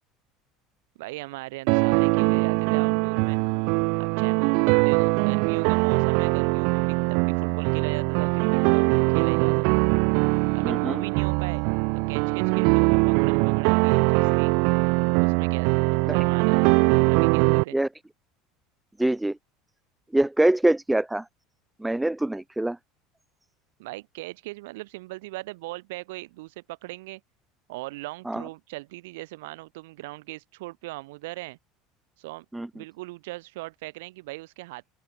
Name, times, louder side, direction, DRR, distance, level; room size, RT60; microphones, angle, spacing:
voice 1, 1.0-3.4 4.0-4.5 4.8-9.8 10.5-11.6 12.1-14.5 15.2-15.7 16.0-16.6 17.1-17.8 23.8-27.2 27.7-31.6 32.2-32.4 32.7-34.8, right 21 dB, 90° right, 4.5 m, -39 dB
sound 1, 1.7-17.6, right 38 dB, 60° right, 1.9 m, -22 dB
voice 2, 10.6-11.0 16.1-16.2 17.7-17.9 19.0-19.4 20.1-21.2 21.8-22.8 28.3-28.4 32.5-32.7, right 1 dB, 5° right, 0.8 m, -24 dB
open air
cardioid pair, 160°, 0 cm